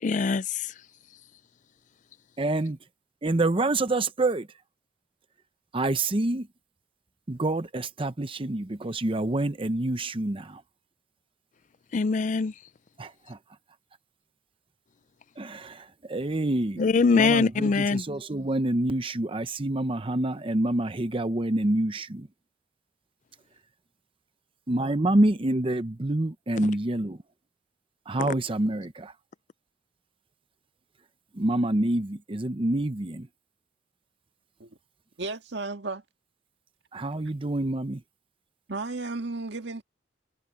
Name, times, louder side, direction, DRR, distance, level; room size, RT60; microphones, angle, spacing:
voice 1, 0.0-0.7 11.9-12.5 16.8-18.0 28.2-28.3, left 4 dB, 45° left, 0.4 m, -23 dB
voice 2, 2.4-2.8 3.2-4.5 5.7-6.5 7.3-10.6 13.0-13.4 15.4-22.3 24.7-27.2 28.1-29.1 31.3-33.3 36.9-38.0, right 2 dB, 30° right, 0.8 m, -27 dB
voice 3, 35.2-36.0 38.7-39.8, right 3 dB, 70° right, 1.8 m, -34 dB
head